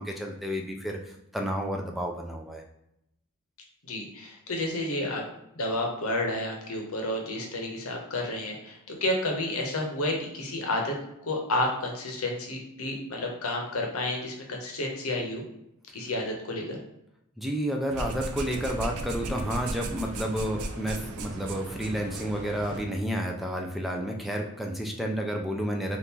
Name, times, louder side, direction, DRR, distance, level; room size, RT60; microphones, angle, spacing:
voice 1, 0.0-2.6 17.4-26.0, equal, ahead, 1 dB, 0.3 m, -31 dB
voice 2, 3.8-5.2 5.5-10.9 11.2-15.4 15.9-16.8, left 1 dB, 70° left, 1 dB, 0.8 m, -30 dB
sound 1, 17.9-22.9, right 2 dB, 75° right, 0.4 m, -36 dB
2.8 x 2.4 x 3.6 m, 0.80 s
head